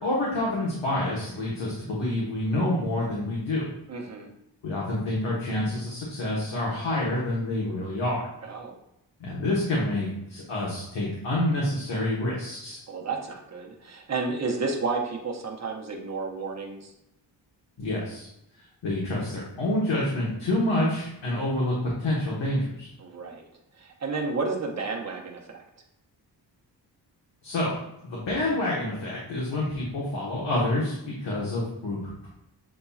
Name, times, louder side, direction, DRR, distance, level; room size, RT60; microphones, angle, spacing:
voice 1, 0.0-3.6 4.6-8.3 9.2-12.8 17.8-18.3 18.8-22.9 27.4-27.7 28.0-32.3, left 1 dB, 75° left, -5 dB, 1.3 m, -28 dB
voice 2, 3.9-4.3 8.4-8.7 12.9-16.9 23.0-23.4 23.8-25.6, right 4 dB, 35° right, 1 dB, 0.9 m, -31 dB
7.7 x 2.7 x 2.4 m, 0.82 s
wide cardioid pair, 120°, 44 cm